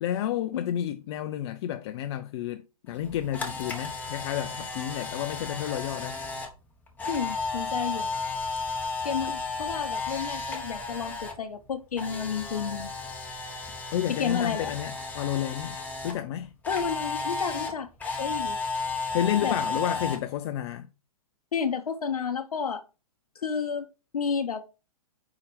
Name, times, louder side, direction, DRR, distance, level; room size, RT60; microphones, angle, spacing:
voice 1, 0.0-6.2 13.9-15.8 16.0-16.5 19.1-20.9, left 11 dB, 50° left, 0.5 m, -31 dB
Camera, 3.0-11.3 11.6-16.1 16.6-20.2, left 3 dB, 10° left, 1.3 m, -33 dB
voice 2, 7.1-8.1 9.0-12.9 14.1-14.7 16.7-17.9 18.2-18.6 19.4-19.6 21.5-22.8 23.4-23.9 24.1-24.6, left 6 dB, 90° left, 0.7 m, -31 dB
4.8 x 4.3 x 5.0 m
hypercardioid pair, 125°, 18 cm